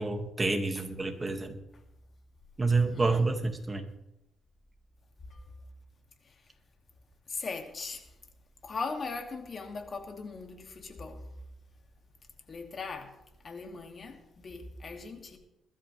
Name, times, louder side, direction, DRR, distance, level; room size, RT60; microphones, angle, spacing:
voice 1, 0.0-1.5 2.6-3.8, right 3 dB, 20° right, 2.1 m, -28 dB
voice 2, 2.7-3.3 5.3-5.4 6.2-6.3 7.3-8.1 8.6-11.3 12.5-13.1 13.4-15.4, left 4 dB, 40° left, 2.5 m, -39 dB
21.0 x 12.5 x 3.4 m
cardioid pair, 90°, 0 cm